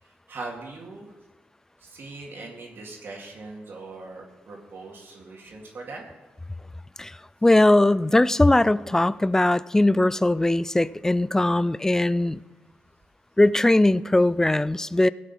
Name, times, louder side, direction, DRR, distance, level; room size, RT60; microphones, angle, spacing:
voice 1, 0.0-1.1 1.8-6.0, right 3 dB, 65° right, -2 dB, 2.2 m, -40 dB
voice 2, 7.4-12.4 13.4-15.1, left 1 dB, 10° left, 19 dB, 0.3 m, -20 dB
16.5 x 7.2 x 5.5 m, 1.1 s
cardioid pair, 80°, 4 cm